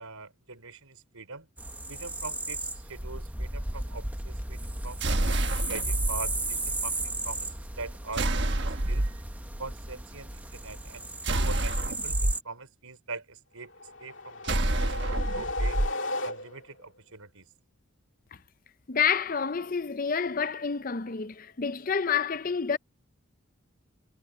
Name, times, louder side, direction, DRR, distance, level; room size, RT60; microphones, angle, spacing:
voice 1, 0.0-1.5 1.9-9.1 9.6-11.1 11.4-13.7 14.0-15.8 16.2-17.5, right 3 dB, 85° right, 4.8 m, -43 dB
sound 1, 1.6-12.4, right 2 dB, 5° right, 0.8 m, -35 dB
sound 2, 5.0-6.1 8.1-9.2 11.2-12.3 14.4-15.9, right 1 dB, 50° right, 1.5 m, -27 dB
sound 3, 13.7-16.8, left 2 dB, 55° left, 2.5 m, -35 dB
voice 2, 18.9-22.8, left 6 dB, 40° left, 0.6 m, -28 dB
head